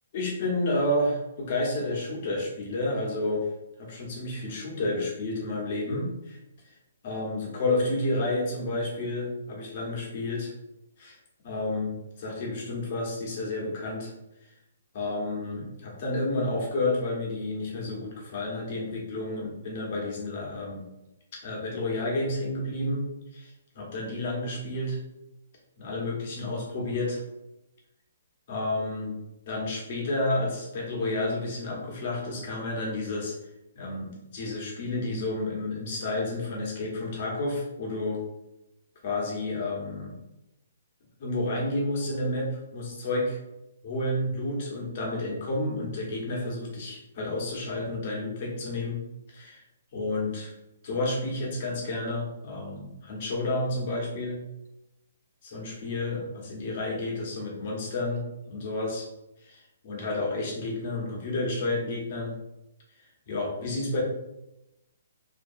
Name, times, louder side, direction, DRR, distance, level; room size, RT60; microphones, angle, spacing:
voice 1, 0.1-3.5 3.8-6.4 6.6-6.7 7.0-10.5 11.0-11.2 11.4-14.1 14.4-14.5 14.9-20.8 21.4-23.1 23.3-25.0 25.8-27.2 28.5-29.2 29.5-33.4 33.7-38.2 39.0-40.2 41.2-43.4 43.8-49.0 49.3-49.6 49.9-50.5 50.8-54.4 55.4-59.0 59.4-62.4 63.3-64.0, left 2 dB, 45° left, -2 dB, 0.9 m, -30 dB
2.6 x 2.2 x 2.6 m, 0.89 s
hypercardioid pair, 145°, 0 cm